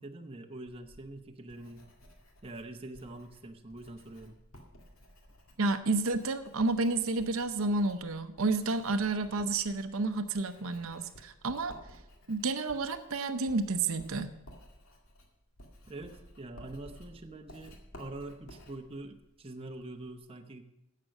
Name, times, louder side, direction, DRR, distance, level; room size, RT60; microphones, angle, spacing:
voice 1, 0.0-1.8 2.4-4.4 15.9-20.7, right 2 dB, 25° right, 5 dB, 0.8 m, -45 dB
Writing, 0.7-20.2, equal, 70° left, 2.1 m, -55 dB
voice 2, 5.6-11.7 12.3-14.3, right 3 dB, 70° right, 9 dB, 0.7 m, -30 dB
11.0 x 7.5 x 6.5 m, 0.91 s
head